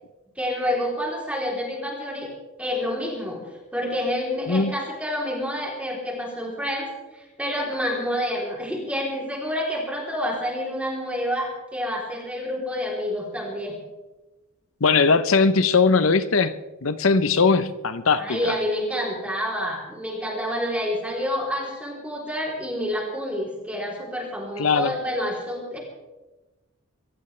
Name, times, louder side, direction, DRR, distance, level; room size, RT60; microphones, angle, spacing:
voice 1, 0.4-2.3 2.6-3.4 3.7-13.8 18.1-25.8, equal, 5° right, -2 dB, 3.5 m, -28 dB
voice 2, 14.8-16.5 16.8-18.5 24.6-24.9, left 4 dB, 80° left, 12 dB, 0.8 m, -20 dB
25.0 x 15.0 x 3.3 m, 1.1 s
head